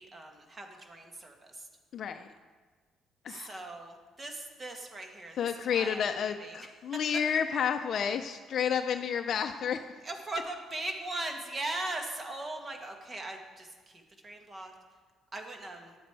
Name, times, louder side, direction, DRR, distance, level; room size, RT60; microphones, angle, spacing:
voice 1, 0.0-1.6 3.3-6.7 10.0-14.7 15.3-16.0, right 2 dB, 30° right, 3 dB, 1.6 m, -40 dB
voice 2, 1.9-2.3 3.2-3.6 5.4-9.8, left 7 dB, 60° left, 7 dB, 0.5 m, -30 dB
11.5 x 8.1 x 4.7 m, 1.4 s
cardioid pair, 95°, 0 cm